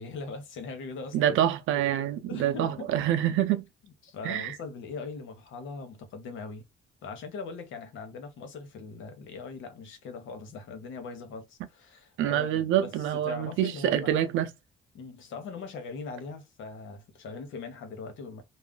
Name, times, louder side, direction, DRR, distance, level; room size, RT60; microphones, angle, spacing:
voice 1, 0.0-1.4 2.3-3.0 4.0-6.6 7.0-14.3 14.9-18.4, left 4 dB, 80° left, 0.9 m, -41 dB
voice 2, 1.1-3.6 4.2-4.6 12.2-14.5, right 11 dB, 90° right, 0.5 m, -26 dB
2.4 x 2.0 x 3.7 m
cardioid pair, 90°, 20 cm